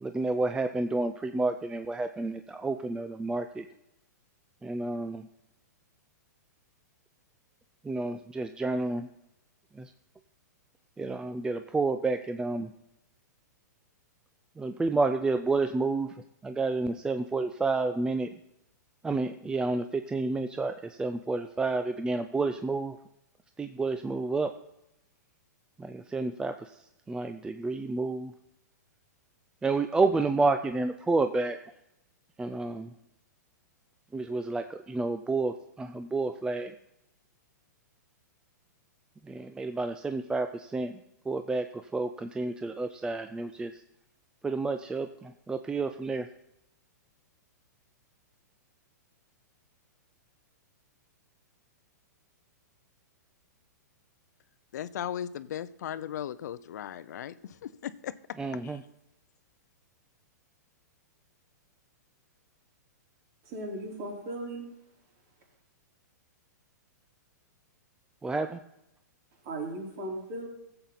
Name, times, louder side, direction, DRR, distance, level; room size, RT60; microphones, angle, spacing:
voice 1, 0.0-3.7 4.6-5.3 7.8-9.1 9.7-9.9 11.0-12.7 14.6-18.3 19.0-23.0 23.6-24.5 25.8-28.3 29.6-31.6 32.4-32.9 34.1-36.8 39.2-41.0 41.3-43.8 44.4-46.3 58.4-58.8 68.2-68.6, right 3 dB, 10° right, 8 dB, 0.4 m, -30 dB
voice 2, 54.7-58.1 58.6-58.8, left 10 dB, 70° left, 15 dB, 0.6 m, -37 dB
voice 3, 63.5-64.7 69.4-70.5, right 1 dB, 45° right, 0 dB, 4.0 m, -37 dB
15.0 x 7.9 x 4.1 m, 0.86 s
hypercardioid pair, 125°, 10 cm